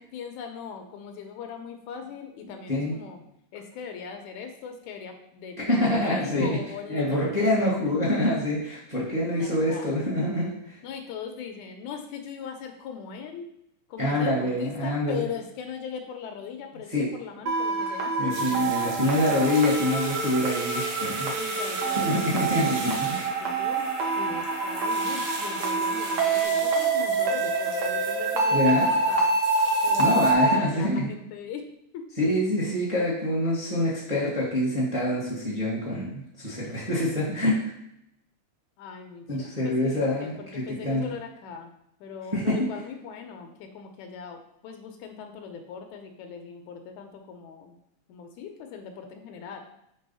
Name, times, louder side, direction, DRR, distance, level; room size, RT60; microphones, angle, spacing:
voice 1, 0.0-3.2 3.5-8.0 9.4-10.0 10.8-13.5 13.9-18.5 21.4-29.3 29.8-31.7 31.9-32.1 38.8-41.7 42.0-47.8 48.1-49.6, left 6 dB, 80° left, 4 dB, 2.1 m, -39 dB
voice 2, 5.7-6.6 6.9-10.8 14.0-15.2 16.9-17.1 18.2-21.3 22.0-23.3 28.5-28.9 30.0-31.1 32.2-37.6 39.3-41.1 42.3-42.6, left 1 dB, 20° right, -6 dB, 1.1 m, -26 dB
sound 1, 17.5-30.6, right 3 dB, 60° right, 1.5 m, -26 dB
sound 2, 18.3-30.3, right 3 dB, 75° right, 2.4 m, -39 dB
sound 3, 19.0-26.5, equal, 40° right, 1.3 m, -41 dB
5.3 x 3.4 x 5.5 m, 0.78 s
omnidirectional pair, 3.4 m